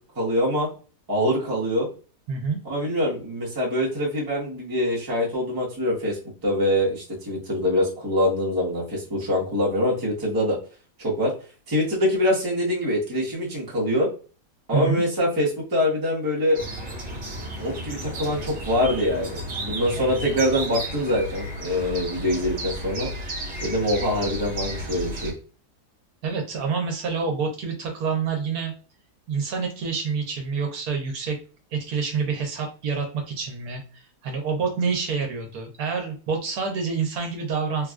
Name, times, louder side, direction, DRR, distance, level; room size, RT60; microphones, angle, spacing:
voice 1, 0.1-0.7 1.1-1.9 2.6-10.6 11.0-11.3 11.7-14.1 14.7-16.6 17.6-23.1 23.6-25.3, left 1 dB, 15° right, -5 dB, 0.8 m, -24 dB
voice 2, 2.3-2.6 14.7-15.0 26.2-28.7 29.3-31.4 31.7-37.9, right 5 dB, 70° right, 3 dB, 1.1 m, -27 dB
sound 1, 16.5-25.3, right 1 dB, 35° right, 1.1 m, -33 dB
3.4 x 2.3 x 2.3 m, 0.37 s
omnidirectional pair, 1.7 m